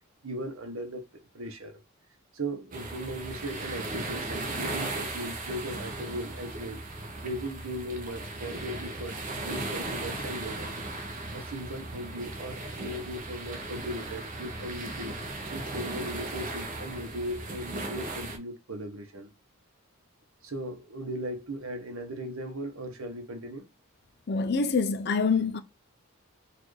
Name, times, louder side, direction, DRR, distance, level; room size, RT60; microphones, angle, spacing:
voice 1, 0.2-1.1 1.3-1.8 2.3-6.8 7.2-10.8 11.3-15.1 15.5-19.3 20.4-23.6, right 1 dB, 70° right, 0.8 m, -38 dB
sound 1, 2.7-18.4, right 2 dB, 35° right, 0.7 m, -37 dB
voice 2, 24.3-25.6, left 4 dB, 45° left, 0.4 m, -25 dB
4.2 x 2.5 x 3.2 m
head